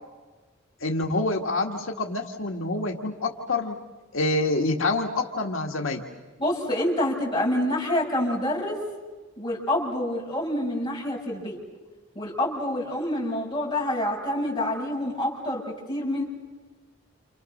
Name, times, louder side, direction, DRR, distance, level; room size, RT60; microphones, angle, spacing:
voice 1, 0.8-3.8 4.1-6.0, left 2 dB, 85° left, 2 dB, 2.0 m, -27 dB
voice 2, 6.4-8.8 9.4-11.6 12.2-15.6 15.9-16.2, left 1 dB, 25° left, -3 dB, 7.2 m, -27 dB
29.5 x 28.5 x 6.7 m, 1.3 s
head